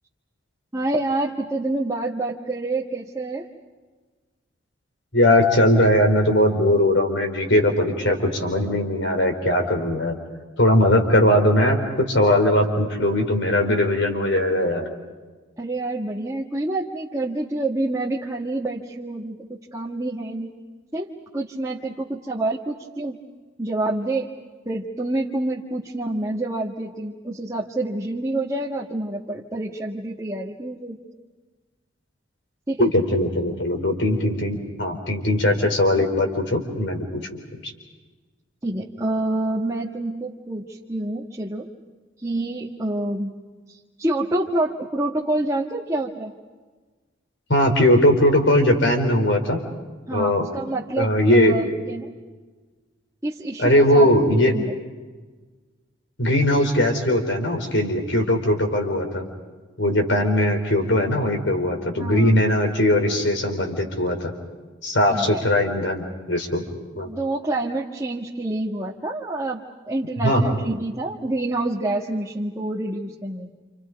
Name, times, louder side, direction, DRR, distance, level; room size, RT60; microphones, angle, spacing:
voice 1, 0.7-3.5 15.6-20.5 20.9-23.2 23.6-24.3 24.6-31.0 32.7-32.9 38.6-41.7 42.2-43.3 43.7-46.3 50.1-52.1 53.2-54.1 54.4-54.7 61.9-62.4 65.1-65.4 67.0-69.6 69.9-73.5, right 2 dB, 15° right, -4 dB, 1.6 m, -27 dB
voice 2, 5.1-10.2 10.6-14.8 32.8-37.0 37.5-37.7 47.5-49.6 50.1-50.5 51.0-51.6 53.6-54.5 56.2-59.3 59.8-64.3 64.8-66.6 67.0-67.1 70.2-70.7, left 1 dB, 65° left, 4 dB, 4.2 m, -20 dB
29.5 x 28.5 x 5.3 m, 1.3 s
head